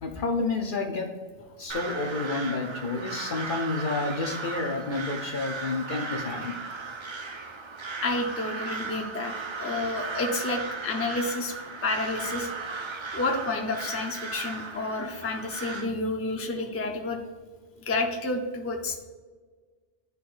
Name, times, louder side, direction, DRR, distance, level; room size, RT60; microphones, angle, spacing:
voice 1, 0.0-1.1 1.6-6.5, left 3 dB, 50° left, 3 dB, 0.8 m, -30 dB
Crow, 1.7-15.9, right 4 dB, 40° right, 0.4 m, -36 dB
voice 2, 8.0-11.5 11.8-12.5 13.1-17.2 17.8-19.0, left 2 dB, 15° left, 2 dB, 0.5 m, -30 dB
10.5 x 4.1 x 2.5 m, 1.4 s
omnidirectional pair, 1.2 m